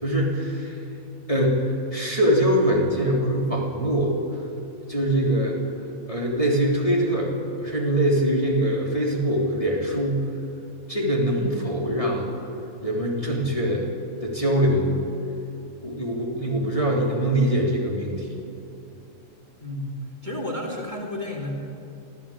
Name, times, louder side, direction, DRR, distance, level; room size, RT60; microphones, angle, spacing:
voice 1, 0.0-0.8 1.3-4.1 4.9-5.6 6.0-7.3 7.6-10.2 10.9-12.3 12.8-13.9 14.2-15.0 15.8-18.4, right 1 dB, 25° left, -3 dB, 3.3 m, -23 dB
voice 2, 19.6-21.5, left 1 dB, 30° right, -1 dB, 2.9 m, -32 dB
24.0 x 14.0 x 8.6 m, 2.9 s
omnidirectional pair, 1.5 m